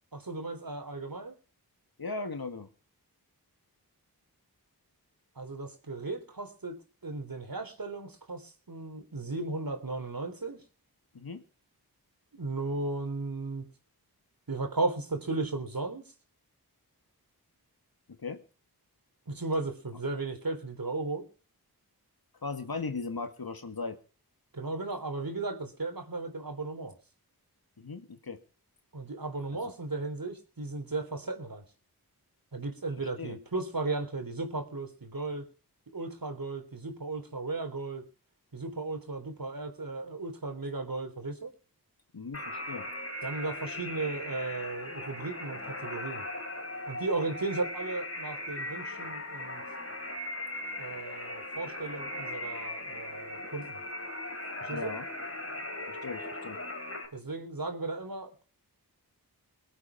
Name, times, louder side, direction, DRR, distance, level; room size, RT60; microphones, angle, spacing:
voice 1, 0.1-1.3 5.4-10.6 12.3-13.7 14.5-16.0 19.3-21.2 24.5-27.0 28.9-31.6 32.5-35.4 35.9-38.0 38.5-41.5 43.2-46.2 46.9-49.6 50.8-53.8 54.6-54.9 57.1-58.5, right 3 dB, 60° right, 6 dB, 3.7 m, -35 dB
voice 2, 2.0-2.7 11.1-11.4 18.2-18.4 22.4-24.0 27.8-28.4 29.5-29.7 33.2-33.4 42.1-42.9 54.7-55.1 55.9-56.6, left 4 dB, 65° left, 8 dB, 2.0 m, -38 dB
sound 1, 42.3-57.1, left 1 dB, 40° left, 3.7 m, -39 dB
22.0 x 8.5 x 6.0 m, 0.38 s
wide cardioid pair, 65°, 38 cm